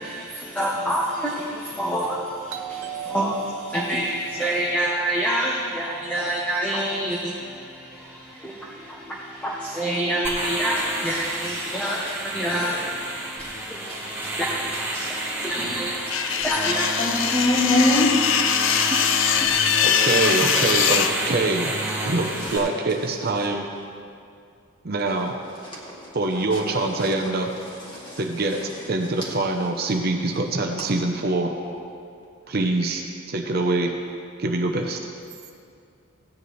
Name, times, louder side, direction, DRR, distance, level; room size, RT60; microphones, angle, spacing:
voice 1, 0.0-20.1 20.4-20.5, right 1 dB, 5° left, -4 dB, 0.9 m, -28 dB
Doorbell, 2.5-7.1, right 10 dB, 65° right, 0.9 m, -39 dB
sound 1, 10.2-22.6, right 1 dB, 10° right, 1.7 m, -30 dB
sound 2, 16.1-21.1, left 8 dB, 60° left, 0.5 m, -22 dB
voice 2, 17.0-18.1 19.5-19.6 22.0-22.6 25.6-26.1 26.5-26.6 27.0-27.1 27.8-28.2 28.8-28.9 31.6-31.7, left 1 dB, 25° left, -6 dB, 2.4 m, -25 dB
voice 3, 19.8-21.7 22.0-23.7 24.8-25.3 26.1-27.5 28.2-28.6 28.9-31.5 32.5-33.9 34.4-35.1, right 2 dB, 45° right, 3 dB, 0.7 m, -24 dB
16.0 x 9.6 x 3.2 m, 2.4 s
head